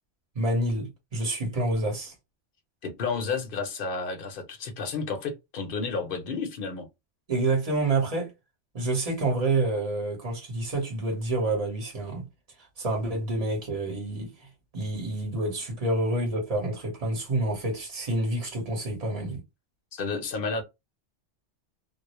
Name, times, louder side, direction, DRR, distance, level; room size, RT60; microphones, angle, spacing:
voice 1, 0.3-2.1 7.3-8.3 8.7-12.2 12.8-14.3 14.7-19.4, right 2 dB, 35° right, 1.0 m, -28 dB
voice 2, 2.8-6.9 19.9-20.6, left 4 dB, 55° left, 0.7 m, -31 dB
2.3 x 2.0 x 2.9 m
omnidirectional pair, 1.2 m